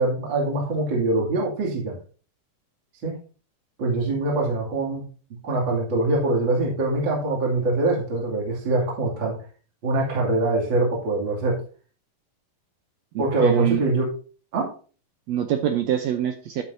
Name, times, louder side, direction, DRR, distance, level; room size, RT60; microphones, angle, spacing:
voice 1, 0.0-2.0 3.0-3.2 3.8-5.0 5.4-9.4 9.8-11.6 13.2-14.1 14.5-14.7, right 2 dB, 35° right, -2 dB, 2.9 m, -23 dB
voice 2, 13.1-13.8 15.3-16.6, right 10 dB, 75° right, 6 dB, 1.6 m, -24 dB
10.5 x 9.8 x 2.7 m, 0.38 s
omnidirectional pair, 4.0 m